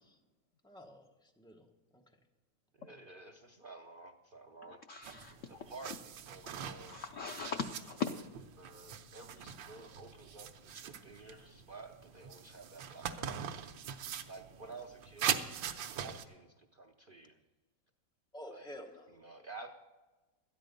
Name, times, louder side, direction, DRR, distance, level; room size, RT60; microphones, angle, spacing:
voice 1, 0.6-1.7 1.9-2.0 18.3-19.1, equal, 5° left, 3 dB, 0.5 m, -50 dB
voice 2, 2.7-4.8 5.5-7.0 8.6-13.5 14.3-15.5 16.0-17.4 18.5-18.7 19.1-19.7, right 3 dB, 70° right, 5 dB, 0.5 m, -52 dB
voice 3, 4.6-5.7 6.4-8.2 13.8-14.0, left 6 dB, 90° left, 5 dB, 0.6 m, -41 dB
sound 1, 5.0-16.2, right 8 dB, 90° right, 1.5 m, -42 dB
12.5 x 10.0 x 5.2 m, 1.2 s
omnidirectional pair, 2.0 m